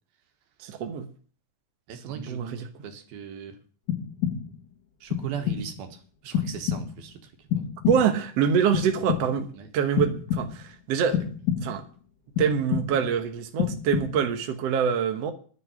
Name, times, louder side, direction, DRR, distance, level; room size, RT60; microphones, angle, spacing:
voice 1, 0.6-1.1 2.2-2.7 7.9-9.5 9.7-11.2 11.6-11.8 12.4-15.3, right 7 dB, 60° right, 1.8 m, -25 dB
voice 2, 1.9-3.6 5.0-7.7 9.6-9.7, right 7 dB, 80° right, 3.4 m, -39 dB
sound 1, 3.9-4.7 5.1-5.8 6.3-7.1 7.5-8.3 8.7-9.5 10.0-10.8 11.1-11.9 12.4-13.2 13.6-14.4, left 9 dB, 60° left, 3.3 m, -29 dB
11.0 x 7.9 x 9.7 m
omnidirectional pair, 4.1 m